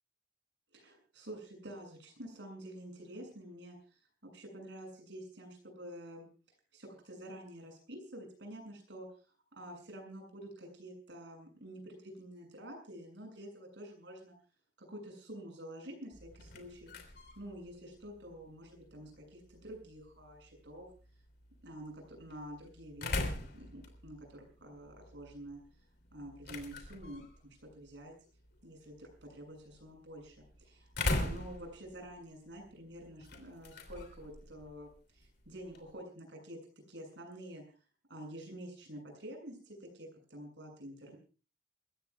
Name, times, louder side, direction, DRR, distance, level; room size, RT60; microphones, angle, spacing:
voice 1, 0.7-6.3 6.7-9.1 9.5-14.3 14.8-16.9 17.4-20.9 21.6-25.6 26.1-28.1 28.6-36.6 36.9-37.6 38.1-41.2, right 1 dB, 65° right, 3 dB, 7.3 m, -48 dB
sound 1, 16.1-36.0, left 2 dB, 60° left, 3.2 m, -43 dB
28.5 x 15.5 x 2.4 m, 0.36 s
head